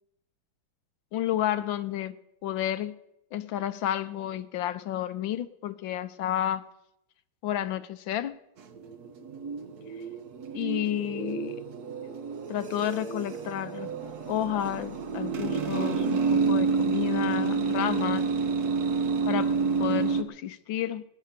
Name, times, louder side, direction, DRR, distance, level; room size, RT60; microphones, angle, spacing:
voice 1, 1.1-2.2 2.4-2.9 3.3-6.6 7.4-8.3 10.5-11.6 12.5-13.9 14.3-18.3 19.3-19.5 19.8-21.0, left 11 dB, 70° left, 13 dB, 1.6 m, -31 dB
sound 1, 8.6-20.2, right 5 dB, 55° right, 1.5 m, -29 dB
20.0 x 10.5 x 6.7 m, 0.83 s
omnidirectional pair, 2.2 m